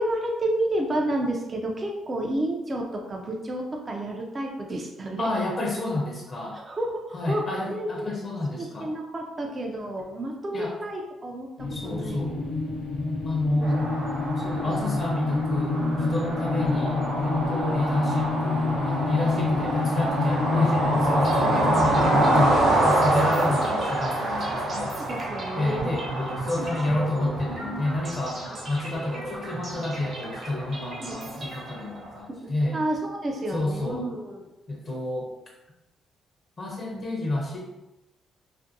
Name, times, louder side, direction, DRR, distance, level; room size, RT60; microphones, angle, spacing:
voice 1, 0.0-5.3 6.5-8.1 8.6-12.2 13.6-13.7 14.1-14.4 14.6-14.9 21.4-22.8 23.4-23.5 24.9-25.9 28.4-28.6 31.0-31.2 32.7-34.4 36.9-37.0, right 1 dB, 35° right, 1 dB, 0.4 m, -31 dB
voice 2, 5.2-6.6 7.1-8.9 10.5-10.7 11.7-12.4 13.2-13.9 14.4-25.0 25.5-32.8 33.5-34.1 34.7-35.3 36.6-37.6, left 1 dB, 40° left, -1 dB, 0.6 m, -30 dB
sound 1, 11.6-22.5, left 3 dB, 85° left, 0.6 m, -27 dB
sound 2, 13.6-32.2, right 2 dB, 85° right, 0.7 m, -27 dB
sound 3, 21.0-32.1, right 1 dB, 50° right, 0.8 m, -38 dB
2.5 x 2.5 x 2.6 m, 0.98 s
cardioid pair, 90°, 0 cm